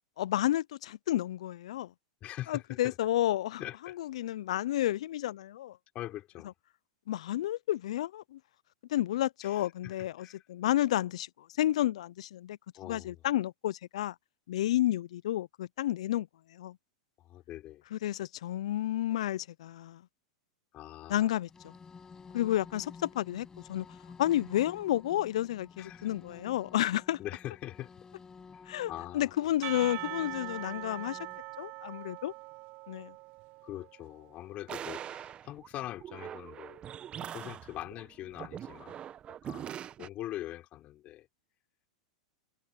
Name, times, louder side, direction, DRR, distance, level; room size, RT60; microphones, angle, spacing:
voice 1, 0.2-1.9 2.5-3.6 4.0-5.8 7.1-8.4 8.9-11.3 11.6-12.6 12.8-14.1 14.5-16.3 16.5-16.8 17.9-20.0 21.1-21.7 22.3-23.9 24.2-27.2 28.7-31.2 31.6-32.3 32.9-33.1, left 13 dB, 70° left, 0.7 m, -31 dB
voice 2, 2.2-3.0 3.6-4.0 5.9-6.5 9.4-10.4 12.7-13.2 17.2-17.8 20.7-21.3 25.8-26.1 27.2-28.1 28.5-28.6 28.9-29.5 33.6-36.8 37.2-39.0 39.4-41.3, left 14 dB, 40° left, 4.2 m, -43 dB
sound 1, 21.4-31.4, left 5 dB, 20° left, 8.0 m, -52 dB
Percussion / Church bell, 29.6-34.2, right 25 dB, 50° right, 0.8 m, -42 dB
sound 2, 34.7-40.1, right 10 dB, 30° right, 1.3 m, -43 dB
hypercardioid pair, 105°, 4 cm